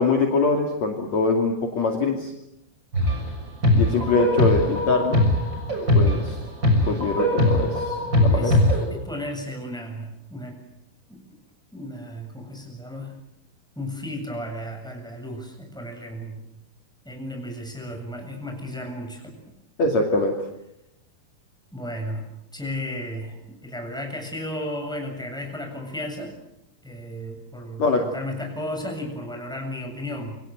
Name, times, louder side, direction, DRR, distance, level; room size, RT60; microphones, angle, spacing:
voice 1, 0.0-2.3 3.7-5.2 6.0-6.4 6.9-8.6 19.8-20.3 27.8-28.0, left 3 dB, 50° left, 2 dB, 3.6 m, -23 dB
sound 1, 2.9-3.3 3.6-8.8, left 1 dB, 25° right, 7.4 m, -21 dB
voice 2, 8.3-8.6 8.9-10.6 11.1-11.2 11.7-13.2 13.8-16.4 17.0-19.3 21.7-26.3 26.8-30.4, left 1 dB, ahead, 3 dB, 7.4 m, -34 dB
28.5 x 26.5 x 8.0 m, 0.83 s
omnidirectional pair, 4.5 m